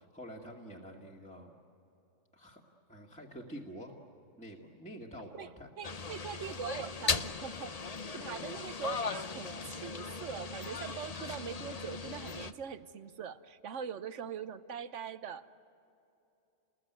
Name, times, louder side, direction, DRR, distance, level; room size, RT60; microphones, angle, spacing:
voice 1, 0.0-1.5 2.3-2.6 2.9-4.0 4.4-5.7, equal, 5° left, -3 dB, 2.0 m, -47 dB
sound 1, 5.8-12.5, left 4 dB, 35° left, 0.7 m, -38 dB
voice 2, 5.8-7.8 8.1-15.5, right 7 dB, 65° right, 12 dB, 1.3 m, -42 dB
30.0 x 21.0 x 9.4 m, 2.8 s
omnidirectional pair, 1.4 m